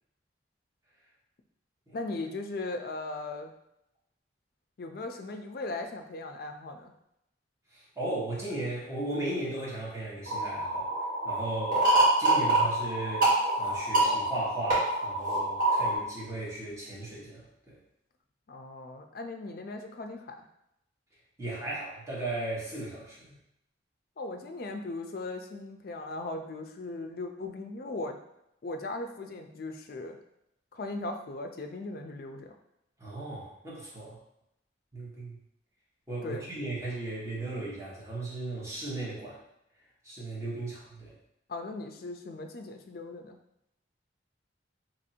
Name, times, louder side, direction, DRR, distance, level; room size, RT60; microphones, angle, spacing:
voice 1, 1.9-3.5 4.8-6.9 18.5-20.4 24.2-28.2 28.6-30.2 30.7-32.5 36.2-36.5 41.5-43.4, left 2 dB, 50° left, 5 dB, 0.4 m, -38 dB
voice 2, 7.7-10.9 11.2-11.9 12.2-13.3 13.6-17.8 21.4-23.4 33.0-34.2 34.9-35.4 36.1-39.4 40.0-41.2, right 2 dB, 15° right, -7 dB, 1.1 m, -36 dB
sound 1, 10.3-15.9, right 2 dB, 45° right, 1.3 m, -26 dB
2.9 x 2.6 x 4.2 m, 0.81 s
head